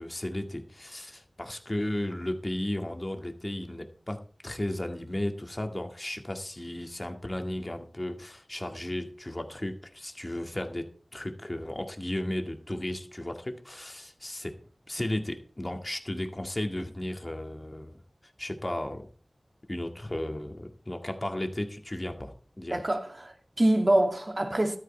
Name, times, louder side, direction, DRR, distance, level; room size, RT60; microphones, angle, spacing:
voice 1, 0.0-14.5 14.9-18.0 18.4-19.1 19.7-22.8, left 1 dB, 30° left, 2.1 m, -34 dB
voice 2, 22.7-24.8, right 1 dB, 45° right, 2.2 m, -25 dB
13.0 x 8.9 x 4.4 m
wide cardioid pair, 45°, 0 cm